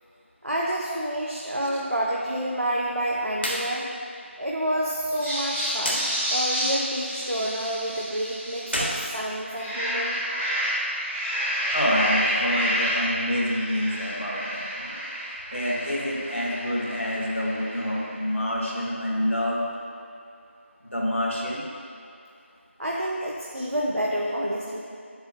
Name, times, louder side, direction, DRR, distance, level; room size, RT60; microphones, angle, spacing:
voice 1, 0.4-3.9 4.4-10.2 22.8-24.8, right 1 dB, 80° right, -3 dB, 0.9 m, -28 dB
sound 1, 3.3-3.6 4.0-4.1 5.8-6.0 8.6-9.9, equal, 55° left, 1.4 m, -30 dB
sound 2, 5.1-9.0 9.4-18.1, equal, 5° right, 0.8 m, -30 dB
voice 2, 11.7-15.0 15.5-19.6 20.9-21.6, left 1 dB, 70° left, -4 dB, 1.6 m, -27 dB
8.1 x 7.8 x 2.3 m, 2.5 s
figure-of-eight pair, 175°, 7 cm